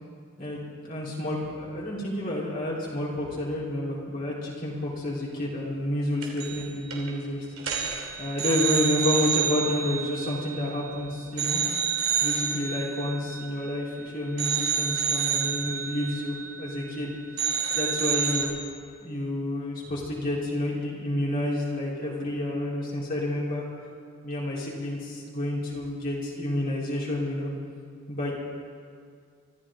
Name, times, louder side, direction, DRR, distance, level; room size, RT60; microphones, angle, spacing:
voice 1, 0.8-7.5 8.2-11.6 12.2-17.1 17.7-18.5 19.0-23.7 24.2-27.5 28.1-28.3, left 1 dB, 45° left, -6 dB, 3.7 m, -29 dB
sound 1, 6.2-6.6 6.9-7.1 7.6-10.9 11.4-14.0 14.4-17.1 17.4-18.4, right 7 dB, 85° right, 2.8 m, -29 dB
24.5 x 14.0 x 3.7 m, 2.1 s
head